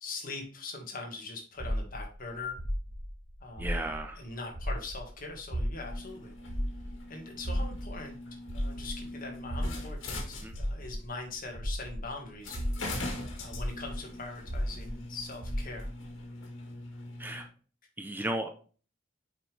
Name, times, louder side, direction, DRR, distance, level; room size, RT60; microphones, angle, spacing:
voice 1, 0.0-2.6 3.4-6.3 7.1-8.2 8.5-12.6 13.4-15.9, left 3 dB, 45° left, 2 dB, 1.8 m, -42 dB
sound 1, 1.6-4.2 4.5-12.1 12.5-16.0, equal, 80° right, 1.6 m, -35 dB
voice 2, 3.6-4.2 10.4-10.5 17.2-17.4 18.0-18.5, right 1 dB, 10° right, 5 dB, 0.6 m, -34 dB
sound 2, 5.8-11.0 11.8-11.9 12.4-17.5, left 2 dB, 90° left, 1.8 m, -42 dB
7.0 x 5.1 x 3.4 m, 0.38 s
head